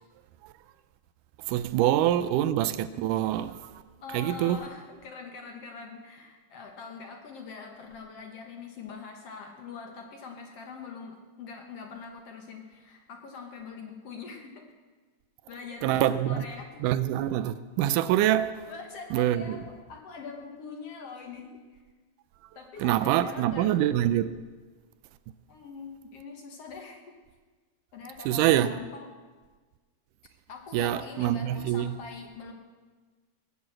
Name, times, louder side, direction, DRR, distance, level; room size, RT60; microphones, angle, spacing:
voice 1, 1.5-3.7 4.1-4.6 15.8-16.5 16.8-18.7 19.1-19.6 22.8-24.4 28.3-28.8 30.7-32.0, right 12 dB, 80° right, 2.1 m, -25 dB
voice 2, 4.0-14.6 15.5-16.9 18.7-21.6 22.6-23.9 25.5-27.1 27.9-29.1 30.5-32.5, left 5 dB, 60° left, 1.9 m, -43 dB
20.0 x 7.0 x 7.5 m
omnidirectional pair, 3.8 m